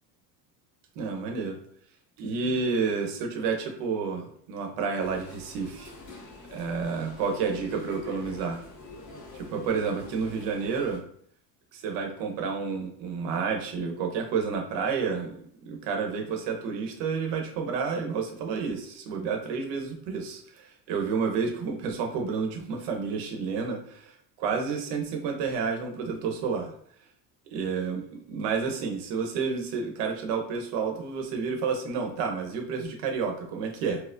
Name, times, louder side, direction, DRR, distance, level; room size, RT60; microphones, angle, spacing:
voice 1, 1.0-1.6 2.2-5.9 6.5-8.6 9.3-11.0 11.7-15.3 15.6-24.1 24.4-26.7 27.5-28.0 28.3-34.0, right 5 dB, 70° right, 3 dB, 0.8 m, -30 dB
sound 1, 5.0-11.0, left 2 dB, 45° left, 1.2 m, -45 dB
4.3 x 2.0 x 2.5 m, 0.62 s
cardioid pair, 135°, 44 cm